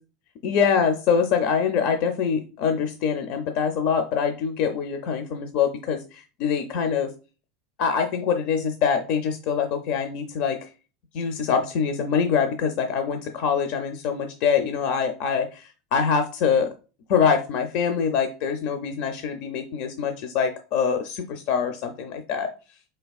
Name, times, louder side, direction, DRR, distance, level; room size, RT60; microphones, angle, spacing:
voice 1, 0.4-7.1 7.8-10.6 11.1-16.7 17.1-22.5, left 6 dB, 55° left, 6 dB, 0.5 m, -24 dB
4.0 x 3.3 x 2.3 m, 0.34 s
supercardioid pair, 130°, 2 cm